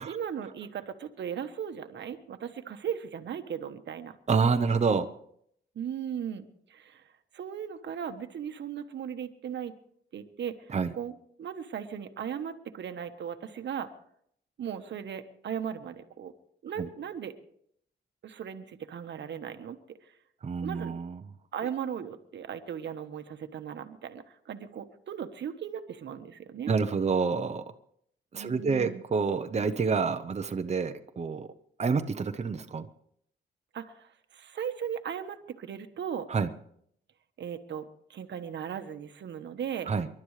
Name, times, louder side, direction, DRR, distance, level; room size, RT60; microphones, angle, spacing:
voice 1, 0.0-4.2 5.7-7.0 7.3-9.7 10.1-10.5 10.9-13.9 14.6-16.3 16.6-17.4 18.2-20.1 20.6-21.0 21.5-26.7 28.3-29.0 33.7-36.3 37.4-39.9, right 8 dB, 85° right, 8 dB, 1.2 m, -37 dB
voice 2, 4.3-5.1 10.7-10.9 16.8-16.9 20.4-21.3 26.7-27.6 28.3-31.5 31.8-32.9 36.3-36.5 39.9-40.1, right 5 dB, 40° right, 7 dB, 0.8 m, -28 dB
28.5 x 12.0 x 3.3 m, 0.68 s
wide cardioid pair, 115°, 18 cm